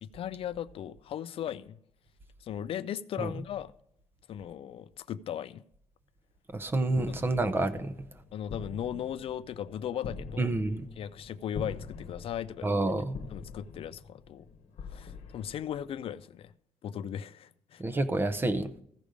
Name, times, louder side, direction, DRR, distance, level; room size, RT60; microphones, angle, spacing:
voice 1, 0.0-1.8 2.4-3.7 4.3-5.6 7.1-7.2 8.3-10.5 11.0-12.7 13.3-14.5 14.9-16.5 16.8-17.8, left 10 dB, 55° left, 0.4 m, -37 dB
voice 2, 6.5-7.9 10.4-10.9 12.6-13.2 17.8-18.8, right 2 dB, 20° right, 0.6 m, -28 dB
sound 1, 6.9-16.2, left 5 dB, 75° left, 1.0 m, -45 dB
15.0 x 5.1 x 5.0 m
cardioid pair, 145°, 11 cm